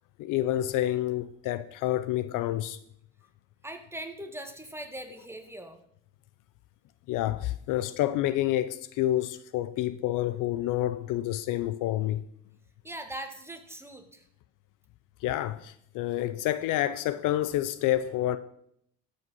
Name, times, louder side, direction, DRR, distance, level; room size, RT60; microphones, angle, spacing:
voice 1, 0.2-2.8 7.1-12.2 15.2-18.4, left 13 dB, 60° left, 0.6 m, -28 dB
voice 2, 3.6-5.8 12.8-14.2, right 1 dB, 5° right, 1.7 m, -41 dB
13.5 x 5.5 x 5.6 m
hypercardioid pair, 75°, 36 cm